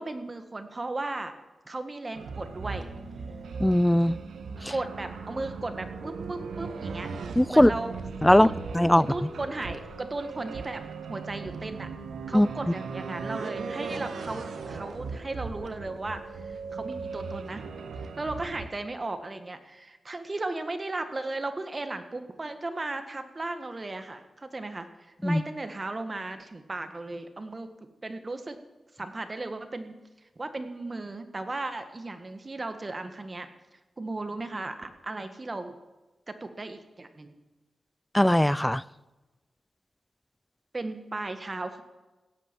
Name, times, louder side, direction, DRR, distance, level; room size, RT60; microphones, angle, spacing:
voice 1, 0.0-1.3 1.7-2.9 4.7-7.1 7.5-8.0 8.3-8.5 8.9-10.8 11.1-11.9 12.3-17.6 18.0-27.7 28.0-28.6 28.9-30.0 30.4-33.5 34.0-35.7 36.3-37.3 40.7-41.8, right 2 dB, 35° right, 1.5 m, -36 dB
sound 1, 2.1-18.7, right 4 dB, 90° right, 1.3 m, -38 dB
voice 2, 3.6-4.2 4.6-4.7 7.4-7.7 8.2-8.5 8.7-9.1 12.3-12.5 25.2-25.4 38.1-38.8, left 1 dB, 10° left, 0.4 m, -19 dB
16.5 x 8.4 x 7.5 m
cardioid pair, 80°, 0 cm